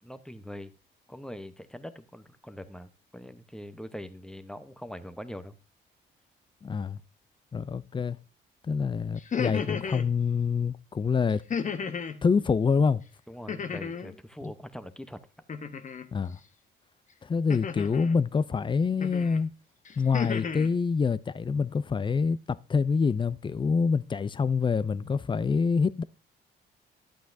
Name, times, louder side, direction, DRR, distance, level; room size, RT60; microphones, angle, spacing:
voice 1, 0.0-0.7 1.1-5.6 13.3-15.2, equal, 5° left, 0.8 m, -42 dB
voice 2, 6.6-7.0 7.5-8.2 8.7-11.4 12.2-13.0 16.1-16.4 17.2-19.5 20.0-26.0, left 5 dB, 25° left, 0.4 m, -26 dB
sound 1, 9.2-10.1 11.5-12.2 13.5-14.1 15.5-16.1 17.5-18.1 19.0-19.4 19.8-20.7, left 6 dB, 40° left, 0.9 m, -33 dB
11.5 x 8.5 x 2.6 m
cardioid pair, 90°, 20 cm